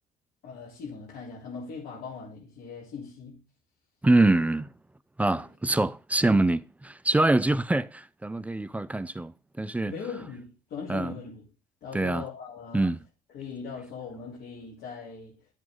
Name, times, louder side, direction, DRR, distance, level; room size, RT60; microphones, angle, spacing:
voice 1, 0.4-3.4 5.3-5.5 9.9-11.5 11.8-12.9 13.3-15.4, left 5 dB, 70° left, 3.6 m, -40 dB
voice 2, 4.0-4.7 5.2-9.9 10.9-11.1 11.9-12.2 12.7-13.0, right 2 dB, 10° right, 0.5 m, -24 dB
11.0 x 7.7 x 3.8 m
cardioid pair, 110°, 17 cm